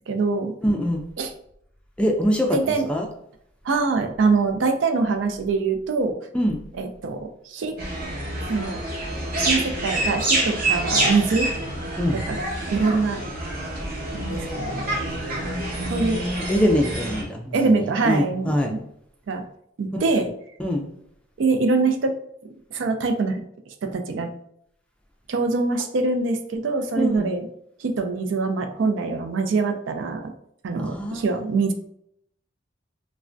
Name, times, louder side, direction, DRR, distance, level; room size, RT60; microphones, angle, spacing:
voice 1, 0.1-0.5 1.2-1.3 2.5-2.9 3.6-6.1 6.8-7.8 8.5-8.8 9.1-11.5 12.3-12.4 12.7-13.2 14.1-14.8 15.9-16.2 17.5-18.8 19.3-19.4 19.8-20.3 21.4-22.1 22.7-23.4 23.8-24.3 25.3-27.4 27.8-30.3 30.6-31.7, right 4 dB, 85° right, 6 dB, 0.4 m, -24 dB
voice 2, 0.6-1.0 2.0-3.1 6.3-6.6 12.0-12.2 16.0-18.7 19.9-20.0 20.6-20.9 27.0-27.3 30.8-31.2, equal, 5° left, 1 dB, 0.3 m, -24 dB
sound 1, 7.8-17.2, right 1 dB, 50° right, 0.9 m, -27 dB
3.3 x 2.1 x 2.5 m, 0.72 s
head